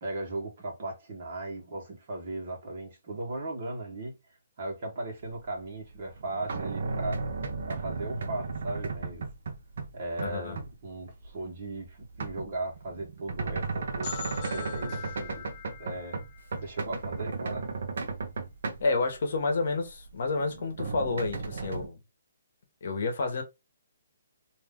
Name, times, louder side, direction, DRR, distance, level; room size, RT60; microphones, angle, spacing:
voice 1, 0.0-4.2 4.6-7.2 7.6-9.3 9.9-15.5 15.8-16.2 16.6-17.7, right 2 dB, 40° right, 1.2 m, -37 dB
sound 1, 5.8-9.9 10.2-10.7 11.2-19.1 19.7-21.9, right 4 dB, 60° right, 0.7 m, -35 dB
voice 2, 10.2-10.6 18.8-22.0 22.8-23.4, left 3 dB, 55° left, 1.1 m, -29 dB
sound 2, 14.0-17.7, left 9 dB, 25° left, 0.4 m, -43 dB
2.6 x 2.5 x 3.6 m
hypercardioid pair, 165°, 0 cm